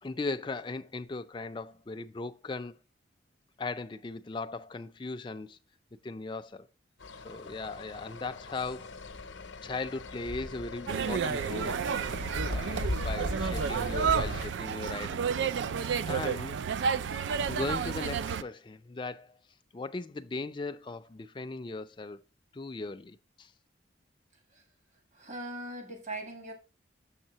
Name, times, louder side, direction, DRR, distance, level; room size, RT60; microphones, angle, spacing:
voice 1, 0.0-2.7 3.6-5.6 6.0-6.7 7.2-8.9 9.6-15.2 16.0-16.6 17.4-19.4 19.7-22.2 22.5-23.5, left 3 dB, 25° left, 0.4 m, -38 dB
sound 1, 7.0-14.5, left 2 dB, 85° left, 0.7 m, -38 dB
sound 2, 10.9-18.4, right 7 dB, 75° right, 0.3 m, -31 dB
voice 2, 25.1-26.5, right 1 dB, 40° right, 1.3 m, -40 dB
6.6 x 6.4 x 2.8 m
head